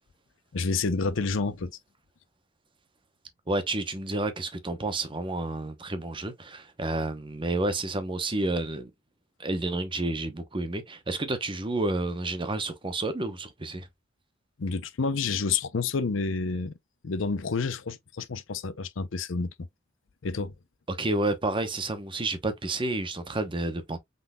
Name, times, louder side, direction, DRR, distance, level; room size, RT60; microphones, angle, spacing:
voice 1, 0.5-1.7 14.6-16.7 17.0-19.5 20.2-20.5, left 4 dB, 70° left, 0.6 m, -29 dB
voice 2, 3.5-8.9 9.4-13.9 20.9-24.0, right 2 dB, 25° right, 0.9 m, -30 dB
5.7 x 4.0 x 2.3 m
head